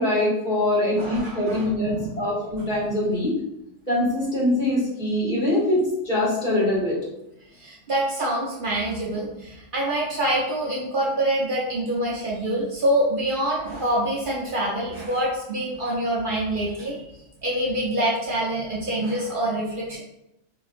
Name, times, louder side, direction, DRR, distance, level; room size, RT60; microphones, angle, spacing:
voice 1, 0.0-3.3 3.9-7.0, left 1 dB, 45° left, -7 dB, 1.4 m, -23 dB
voice 2, 0.9-2.3 2.6-2.7 7.5-17.1 17.4-20.0, right 1 dB, 50° right, -4 dB, 0.8 m, -26 dB
4.8 x 2.8 x 2.4 m, 0.89 s
omnidirectional pair, 1.2 m